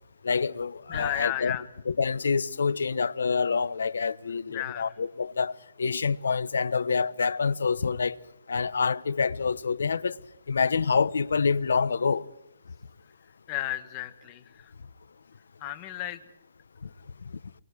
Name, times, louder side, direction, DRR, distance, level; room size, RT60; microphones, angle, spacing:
voice 1, 0.2-1.6 1.9-8.2 8.5-10.1 10.5-12.3, left 5 dB, 70° left, 1.1 m, -27 dB
voice 2, 0.9-1.7 4.5-4.9 13.5-14.7 15.6-16.2 16.8-16.9, left 13 dB, 15° left, 1.3 m, -33 dB
27.0 x 24.5 x 4.7 m
hypercardioid pair, 180°, 0 cm